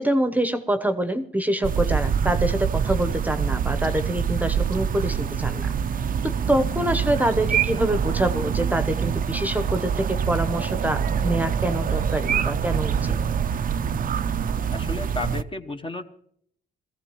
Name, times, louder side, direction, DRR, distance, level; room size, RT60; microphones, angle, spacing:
voice 1, 0.0-5.7 6.2-13.1, right 1 dB, 10° right, 8 dB, 0.9 m, -25 dB
sound 1, 1.6-15.4, right 7 dB, 45° right, 0.6 m, -25 dB
voice 2, 14.7-16.0, left 2 dB, 25° left, 7 dB, 1.0 m, -32 dB
22.0 x 15.0 x 3.1 m, 0.68 s
cardioid pair, 90°, 20 cm